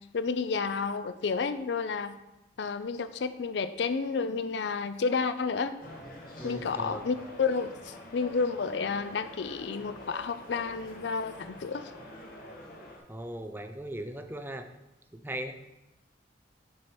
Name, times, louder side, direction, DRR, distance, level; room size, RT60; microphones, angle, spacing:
voice 1, 0.1-2.1 2.6-5.7 6.4-11.9, left 5 dB, 70° left, 12 dB, 0.4 m, -31 dB
sound 1, 5.8-13.0, left 1 dB, 55° left, 1.5 m, -46 dB
voice 2, 6.4-7.1 13.1-14.7 15.1-15.5, right 1 dB, 10° right, 7 dB, 0.5 m, -38 dB
7.7 x 5.6 x 4.4 m, 0.95 s
head